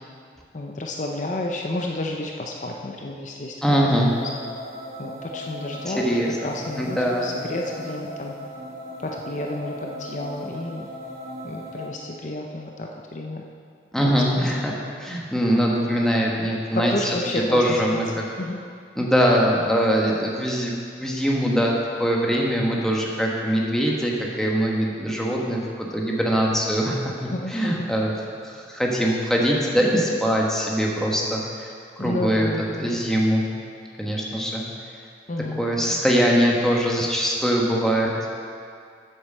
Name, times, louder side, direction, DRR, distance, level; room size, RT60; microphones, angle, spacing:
voice 1, 0.5-3.9 5.0-8.4 9.0-10.9 11.4-13.4 14.0-14.2 16.9-18.0 18.4-18.6 27.3-27.9 32.0-33.0 35.3-36.0 37.0-37.1, left 1 dB, 45° left, 1 dB, 0.7 m, -31 dB
voice 2, 3.6-4.1 5.9-6.3 6.8-7.3 13.9-16.9 17.5-18.0 19.0-32.5 32.8-33.5 34.0-34.6 35.6-38.1, equal, 5° left, -3 dB, 1.2 m, -22 dB
sound 1, 3.9-11.9, equal, 60° right, 2.1 m, -37 dB
8.0 x 7.4 x 6.4 m, 2.3 s
head